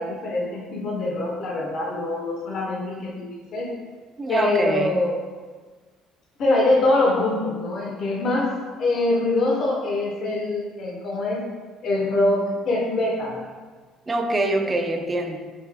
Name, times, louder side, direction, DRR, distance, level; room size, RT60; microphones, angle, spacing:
voice 1, 0.0-3.7 4.3-5.1 6.4-8.5 8.8-11.4 11.8-13.4, left 2 dB, 40° left, -3 dB, 0.6 m, -24 dB
voice 2, 4.2-5.0 14.1-15.4, right 2 dB, 20° right, 4 dB, 0.3 m, -24 dB
3.9 x 3.4 x 3.3 m, 1.4 s
cardioid pair, 155°, 0 cm